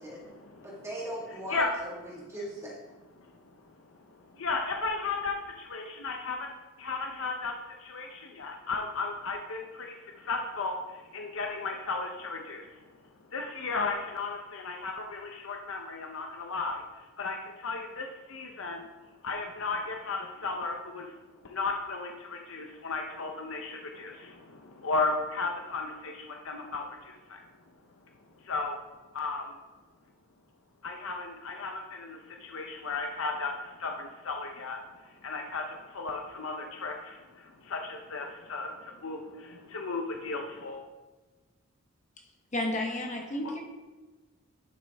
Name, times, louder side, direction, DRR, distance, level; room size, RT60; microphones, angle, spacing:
voice 1, 0.0-0.9 1.5-1.8 3.2-6.5 6.8-12.9 13.2-21.2 21.4-27.4 28.4-28.8 29.1-29.6 30.8-40.8 43.4-43.6, left 3 dB, 65° left, 2 dB, 0.7 m, -35 dB
voice 2, 0.6-2.8, equal, 15° right, -4 dB, 1.8 m, -39 dB
voice 3, 42.5-43.6, left 1 dB, 35° left, 1 dB, 1.1 m, -31 dB
11.0 x 6.3 x 3.5 m, 1.2 s
head